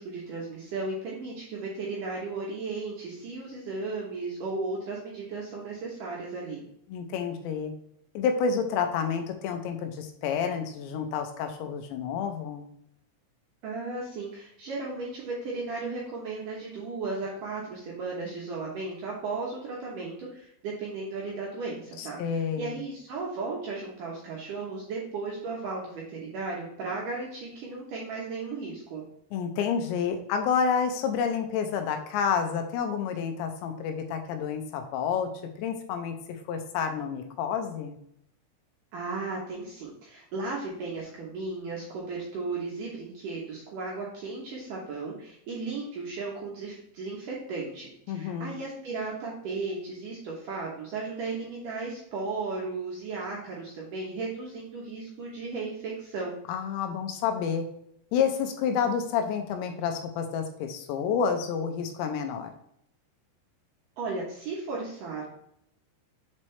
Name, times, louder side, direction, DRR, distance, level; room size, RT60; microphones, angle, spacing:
voice 1, 0.0-6.6 13.6-22.2 22.6-29.0 38.9-56.3 64.0-65.2, right 3 dB, 70° right, -4 dB, 2.1 m, -35 dB
voice 2, 6.9-7.7 8.1-12.7 22.0-22.8 29.3-35.3 35.6-36.2 36.5-38.0 48.1-48.6 56.5-57.7 58.1-62.5, left 6 dB, 90° left, 6 dB, 3.0 m, -29 dB
7.4 x 4.2 x 3.3 m, 0.72 s
omnidirectional pair, 5.1 m